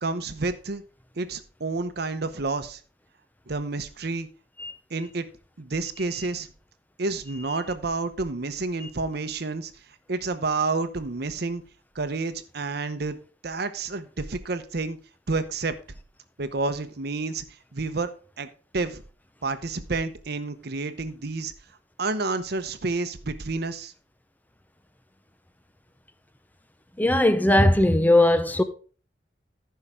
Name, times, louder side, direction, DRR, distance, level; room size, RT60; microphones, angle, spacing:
voice 1, 0.0-0.8 1.2-2.8 3.5-4.3 4.9-5.2 5.6-6.5 7.0-9.7 10.1-11.6 11.9-13.2 13.4-15.0 15.3-15.7 16.4-17.4 17.7-18.1 18.4-18.5 18.7-19.0 19.4-21.5 22.0-23.9, right 3 dB, 65° right, 0.9 m, -29 dB
voice 2, 27.0-28.6, left 1 dB, 10° left, 0.7 m, -19 dB
14.0 x 5.7 x 3.6 m
head